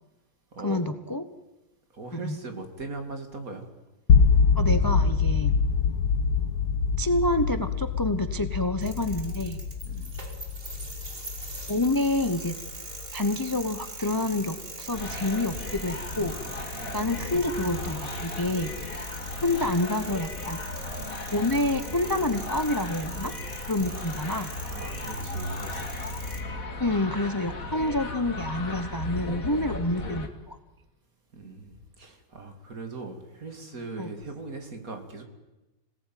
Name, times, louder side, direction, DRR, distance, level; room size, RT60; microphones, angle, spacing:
voice 1, 0.6-1.3 2.1-2.4 4.6-5.5 7.0-9.6 11.7-12.6 13.1-16.4 16.9-18.7 19.4-20.6 21.3-23.3 23.7-24.5 26.8-30.6 34.0-34.1, left 1 dB, 20° left, 10 dB, 0.7 m, -28 dB
voice 2, 1.9-3.7 9.8-10.1 16.7-17.3 23.9-24.0 24.7-26.1 31.3-35.2, right 3 dB, 50° right, 5 dB, 3.1 m, -40 dB
sound 1, 4.1-14.1, left 5 dB, 85° left, 2.2 m, -25 dB
sound 2, 8.8-26.4, right 2 dB, 30° right, 2.6 m, -42 dB
sound 3, 14.9-30.3, left 2 dB, 50° left, 2.7 m, -36 dB
25.5 x 18.0 x 9.3 m, 1.0 s
omnidirectional pair, 1.9 m